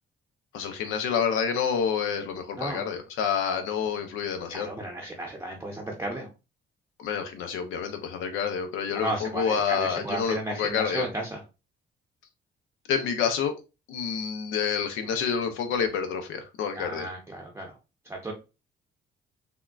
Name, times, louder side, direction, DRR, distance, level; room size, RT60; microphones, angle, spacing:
voice 1, 0.5-4.7 7.0-11.0 12.9-13.5 13.9-17.1, left 7 dB, 90° left, 7 dB, 0.5 m, -28 dB
voice 2, 4.5-6.3 8.9-11.4 16.7-17.8 18.0-18.3, right 1 dB, 15° right, -1 dB, 0.6 m, -34 dB
3.5 x 2.2 x 2.3 m, 0.29 s
cardioid pair, 90°, 20 cm